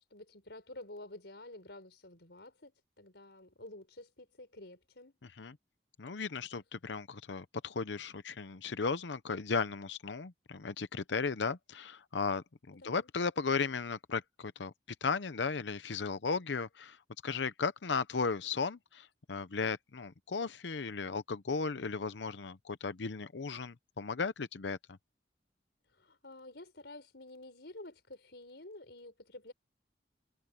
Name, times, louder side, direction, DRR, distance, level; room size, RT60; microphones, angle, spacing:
voice 1, 0.1-5.2 12.8-13.1 25.9-29.5, left 2 dB, 70° left, 6.2 m, -50 dB
voice 2, 6.0-14.7 15.0-17.0 17.2-25.0, left 5 dB, 85° left, 0.7 m, -35 dB
head